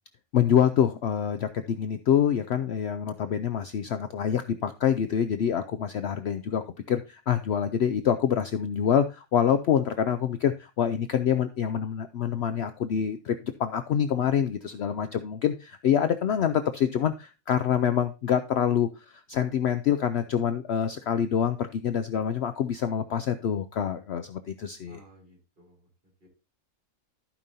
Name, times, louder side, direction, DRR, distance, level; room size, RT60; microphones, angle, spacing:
voice 1, 0.3-25.0, left 8 dB, 65° left, 9 dB, 0.7 m, -26 dB
voice 2, 14.7-15.1 24.9-25.9 26.2-26.3, right 1 dB, 40° right, -1 dB, 3.6 m, -56 dB
14.5 x 5.3 x 2.7 m, 0.28 s
omnidirectional pair, 1.5 m